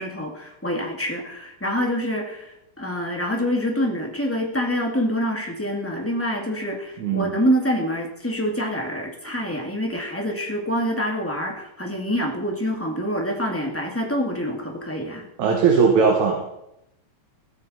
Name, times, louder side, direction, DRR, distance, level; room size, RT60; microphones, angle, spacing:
voice 1, 0.0-15.3, equal, 5° left, 1 dB, 1.4 m, -26 dB
voice 2, 7.0-7.3 15.4-16.4, right 5 dB, 70° right, 0 dB, 3.1 m, -19 dB
16.0 x 14.0 x 4.2 m, 0.84 s
omnidirectional pair, 3.5 m